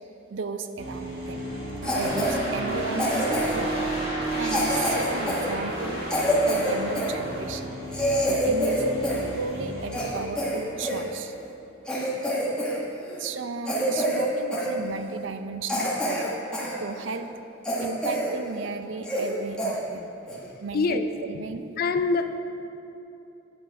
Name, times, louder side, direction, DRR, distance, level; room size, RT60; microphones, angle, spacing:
voice 1, 0.3-1.5 1.9-3.9 4.3-6.0 6.5-7.8 8.2-8.9 9.3-11.3 13.2-16.3 16.8-17.3 17.8-20.1 20.6-21.7, right 4 dB, 70° right, 9 dB, 0.5 m, -34 dB
sound 1, 0.8-11.1, right 1 dB, 50° right, 2.0 m, -32 dB
Cough, 1.8-2.4 3.0-3.7 4.4-7.1 7.6-7.7 7.9-9.3 9.6-11.0 11.5-11.6 11.9-12.8 13.0-13.3 13.6-14.3 14.5-14.7 15.2-15.3 15.7-16.7 17.1-17.2 17.6-18.3 18.6-18.7 19.0-19.3 19.6-19.7 20.3-20.5, equal, 5° left, 1.4 m, -27 dB
voice 2, 20.4-21.1 21.8-22.4, left 4 dB, 50° left, 9 dB, 0.4 m, -25 dB
10.0 x 5.5 x 4.7 m, 2.9 s
head